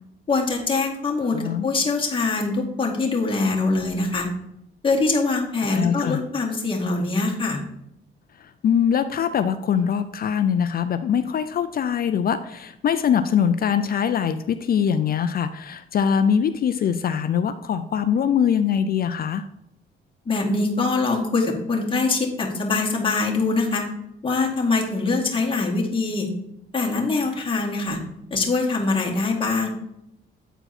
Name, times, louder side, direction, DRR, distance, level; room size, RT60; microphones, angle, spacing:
voice 1, 0.3-4.3 4.8-7.6 20.3-23.8 24.2-26.3 26.7-28.0 28.3-29.7, left 3 dB, 25° left, -2 dB, 2.1 m, -23 dB
voice 2, 1.3-1.7 5.6-6.2 8.6-19.4, left 8 dB, 50° left, 10 dB, 0.4 m, -22 dB
9.0 x 4.5 x 4.3 m, 0.80 s
cardioid pair, 90°, 20 cm